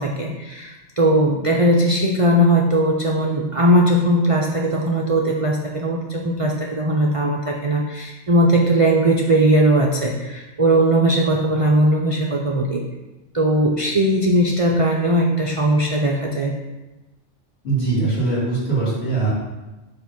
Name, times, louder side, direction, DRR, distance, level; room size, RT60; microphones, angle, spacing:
voice 1, 0.0-12.8 13.3-16.5, right 1 dB, 55° right, -2 dB, 0.3 m, -19 dB
voice 2, 17.6-19.3, right 3 dB, 55° left, -8 dB, 2.8 m, -21 dB
6.9 x 2.9 x 5.8 m, 1.1 s
omnidirectional pair, 1.3 m